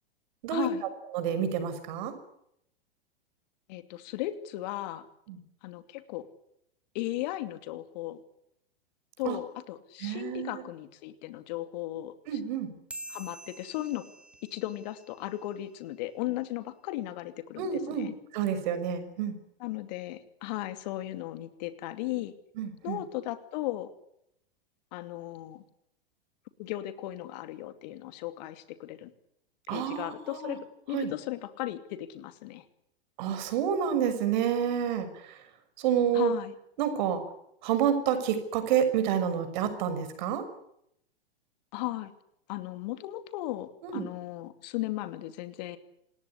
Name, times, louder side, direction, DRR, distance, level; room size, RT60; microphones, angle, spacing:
voice 1, 0.5-0.8 3.7-5.1 5.6-6.2 6.9-8.2 9.2-12.4 13.1-14.0 14.5-18.1 19.6-22.3 22.8-23.9 24.9-25.6 26.6-29.1 29.7-32.6 36.1-36.5 41.7-42.1 42.5-45.8, left 15 dB, 45° left, 10 dB, 2.7 m, -36 dB
voice 2, 1.1-2.1 5.3-5.4 9.2-9.4 10.0-10.6 12.3-12.7 17.6-19.4 22.6-23.0 29.7-30.6 30.9-31.1 33.2-35.4 35.8-36.3 36.8-37.2 37.6-40.4 43.8-44.1, right 8 dB, 50° right, 10 dB, 6.2 m, -29 dB
sound 1, 12.9-15.8, right 1 dB, 5° right, 4.2 m, -47 dB
27.5 x 19.5 x 9.9 m, 0.76 s
figure-of-eight pair, 100°, 30 cm